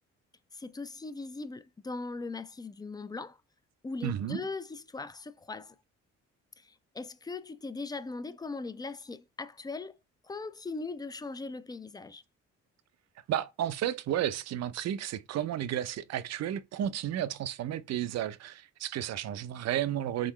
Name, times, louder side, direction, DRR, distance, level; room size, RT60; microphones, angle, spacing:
voice 1, 0.5-3.4 3.8-5.7 6.6-10.0 10.2-12.2, left 3 dB, 15° left, 0.3 m, -39 dB
voice 2, 4.0-4.4 13.3-20.3, right 11 dB, 60° right, 0.5 m, -32 dB
3.8 x 3.7 x 3.0 m
cardioid pair, 90°, 30 cm